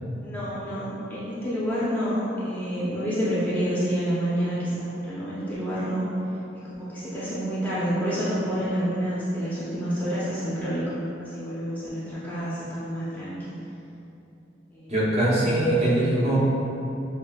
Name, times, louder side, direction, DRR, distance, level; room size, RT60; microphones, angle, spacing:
voice 1, 0.2-6.1 6.6-10.8 11.2-13.5 14.7-15.1 15.8-16.3, equal, 10° left, -11 dB, 0.7 m, -28 dB
voice 2, 14.9-16.4, right 1 dB, 40° right, -9 dB, 1.0 m, -22 dB
6.5 x 2.4 x 2.4 m, 2.9 s
head